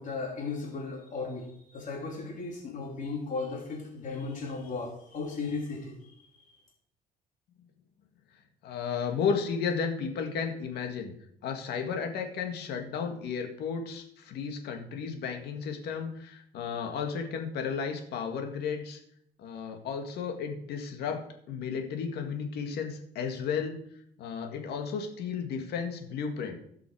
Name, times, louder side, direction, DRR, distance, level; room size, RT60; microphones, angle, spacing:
voice 1, 0.0-6.3, left 4 dB, 50° left, -1 dB, 3.1 m, -36 dB
voice 2, 8.6-11.1 11.4-19.0 19.4-21.2 21.5-23.8 24.2-26.6, left 6 dB, 75° left, 4 dB, 2.0 m, -33 dB
16.0 x 6.1 x 4.8 m, 0.68 s
cardioid pair, 110°, 17 cm